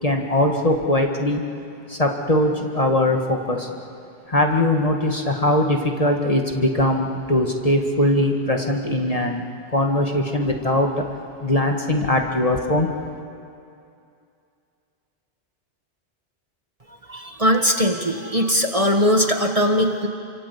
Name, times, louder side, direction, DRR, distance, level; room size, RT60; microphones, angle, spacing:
voice 1, 0.0-1.4 1.9-3.7 4.3-11.0 11.4-12.9, left 1 dB, 35° left, 2 dB, 1.9 m, -21 dB
voice 2, 17.1-20.1, equal, 30° right, 4 dB, 1.6 m, -20 dB
28.0 x 25.0 x 8.4 m, 2.5 s
omnidirectional pair, 1.1 m